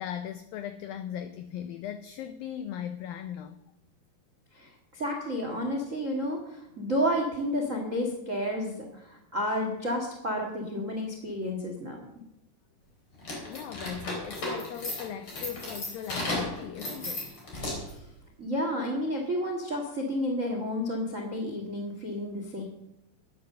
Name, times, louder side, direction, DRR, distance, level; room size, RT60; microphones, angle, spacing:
voice 1, 0.0-3.6 13.4-17.3, left 10 dB, 90° left, 10 dB, 2.0 m, -38 dB
voice 2, 4.5-12.0 17.9-18.0 18.4-22.6, equal, 65° right, 2 dB, 0.7 m, -31 dB
sound 1, 13.2-18.0, left 2 dB, 30° left, 4.0 m, -35 dB
12.0 x 9.6 x 6.6 m, 0.83 s
omnidirectional pair, 5.0 m